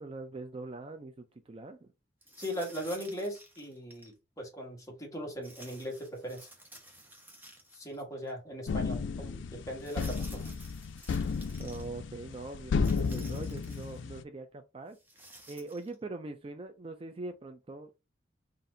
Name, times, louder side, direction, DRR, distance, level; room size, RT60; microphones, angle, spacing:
voice 1, 0.0-1.9 11.6-17.9, right 2 dB, 30° right, 0.4 m, -43 dB
sound 1, 2.2-4.1 5.4-8.0 8.3-8.4 9.8-11.9 12.8-14.0 14.9-15.9, right 1 dB, 10° right, 0.9 m, -53 dB
voice 2, 2.4-6.5 7.7-10.5, equal, 20° left, 1.2 m, -39 dB
sound 2, 8.7-14.2, left 5 dB, 80° left, 0.4 m, -33 dB
4.1 x 2.5 x 3.8 m
head